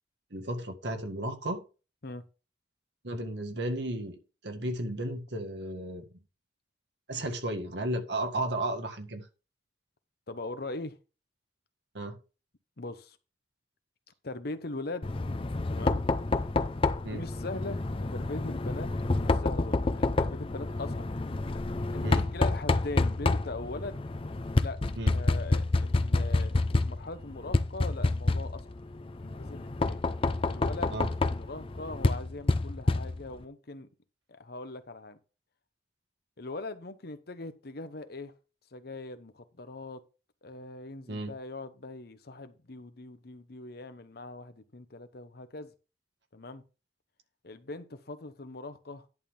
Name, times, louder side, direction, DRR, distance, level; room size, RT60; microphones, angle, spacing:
voice 1, 0.3-1.6 3.0-4.2 4.4-6.0 7.1-9.3 11.9-12.2 17.0-17.2 22.0-22.2 25.0-25.2 30.9-31.1 41.1-41.3, right 1 dB, 70° right, 1.8 m, -34 dB
voice 2, 10.3-11.0 12.8-13.2 14.2-15.1 15.7-16.0 17.1-18.9 19.2-21.1 21.9-24.0 24.6-28.7 29.2-30.0 30.5-31.0 31.2-33.9 34.3-35.2 36.4-38.3 38.7-40.0 40.4-45.7 46.3-46.6 47.4-49.1, left 2 dB, 55° left, 0.9 m, -41 dB
Knock, 15.0-33.4, left 2 dB, 30° left, 0.5 m, -29 dB
11.0 x 3.6 x 7.2 m
head